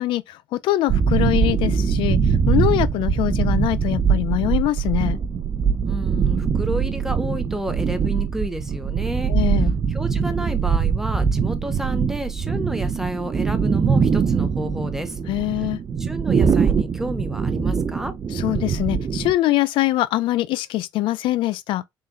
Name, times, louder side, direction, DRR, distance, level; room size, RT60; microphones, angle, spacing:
voice 1, 0.0-5.2 9.3-9.7 15.3-15.8 18.3-21.9, left 15 dB, 80° left, 0.4 m, -23 dB
sound 1, 0.9-19.3, right 6 dB, 35° right, 0.6 m, -22 dB
voice 2, 5.9-9.3 9.9-15.2 16.0-18.1, right 1 dB, 5° right, 0.8 m, -30 dB
4.2 x 3.8 x 2.4 m
cardioid pair, 115°, 8 cm